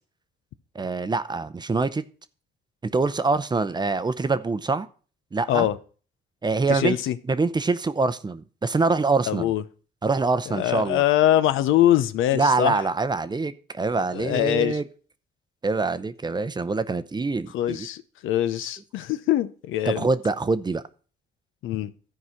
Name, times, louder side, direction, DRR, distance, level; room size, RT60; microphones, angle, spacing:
voice 1, 0.7-2.0 2.8-4.9 5.3-5.7 6.4-7.0 7.3-9.5 10.0-11.0 12.3-14.8 15.6-17.9 19.9-20.8, right 3 dB, 20° right, 13 dB, 0.6 m, -24 dB
voice 2, 6.7-7.2 9.3-9.6 10.5-12.8 14.1-14.8 17.5-20.1 21.6-21.9, left 12 dB, 85° left, 13 dB, 0.6 m, -23 dB
12.5 x 4.8 x 5.6 m, 0.40 s
cardioid pair, 90°, 20 cm